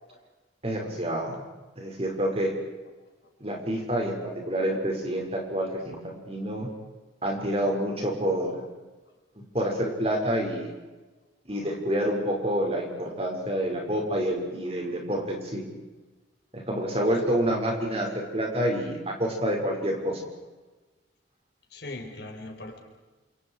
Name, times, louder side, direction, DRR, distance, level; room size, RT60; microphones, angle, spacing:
voice 1, 0.6-1.4 1.8-2.5 3.4-6.7 7.2-8.6 9.5-10.7 11.5-15.6 16.5-20.2, equal, 30° right, 0 dB, 5.9 m, -28 dB
voice 2, 21.7-22.8, left 2 dB, 55° left, 3 dB, 4.8 m, -40 dB
28.5 x 28.0 x 5.0 m, 1.2 s
head